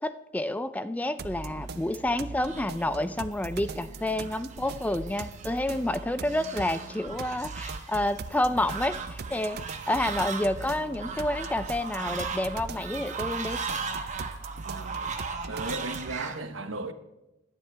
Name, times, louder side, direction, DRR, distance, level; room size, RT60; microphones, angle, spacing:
voice 1, 0.0-13.6, left 1 dB, 10° left, 0.3 m, -29 dB
sound 1, 1.2-16.2, right 4 dB, 55° right, 0.5 m, -41 dB
Fowl, 1.6-16.4, right 5 dB, 40° right, 1.2 m, -38 dB
voice 2, 14.6-15.0 15.5-16.9, right 2 dB, 80° right, 1.0 m, -35 dB
17.5 x 12.0 x 3.4 m
head